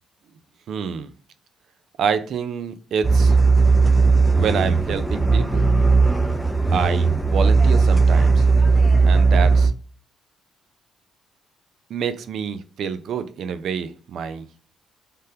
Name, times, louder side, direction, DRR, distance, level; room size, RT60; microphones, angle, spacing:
voice 1, 0.7-1.1 2.0-3.4 4.3-5.7 6.7-8.5 9.1-9.7 11.9-14.5, right 6 dB, 70° right, 0.4 m, -27 dB
sound 1, 3.0-9.7, right 4 dB, ahead, 0.5 m, -17 dB
3.4 x 2.2 x 2.7 m
cardioid pair, 90°, 0 cm